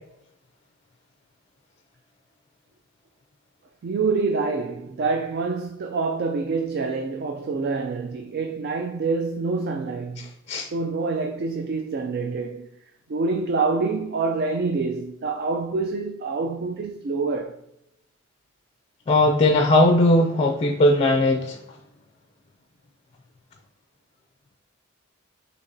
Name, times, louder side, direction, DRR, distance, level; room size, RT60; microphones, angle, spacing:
voice 1, 3.8-10.3 10.7-12.7 13.1-17.6, right 4 dB, 50° right, 0.3 m, -26 dB
voice 2, 19.1-21.6, left 1 dB, 30° left, 0.4 m, -18 dB
6.5 x 2.9 x 2.7 m
head